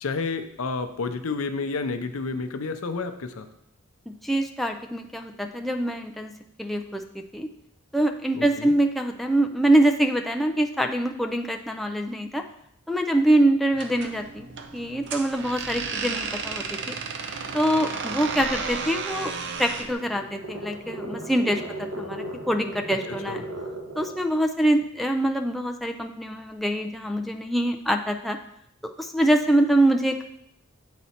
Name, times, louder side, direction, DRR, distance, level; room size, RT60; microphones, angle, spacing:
voice 1, 0.0-3.5 8.3-8.7 23.3-23.4, left 4 dB, 70° left, 9 dB, 0.6 m, -30 dB
voice 2, 4.1-6.3 6.6-7.5 7.9-12.4 12.9-16.9 17.5-19.3 19.6-23.4 24.0-28.4 29.0-30.2, right 1 dB, ahead, 3 dB, 0.3 m, -24 dB
sound 1, 13.7-19.9, right 5 dB, 60° right, 0.6 m, -33 dB
sound 2, 19.5-24.3, right 1 dB, 85° right, 1.3 m, -36 dB
8.1 x 4.2 x 4.2 m, 0.77 s
head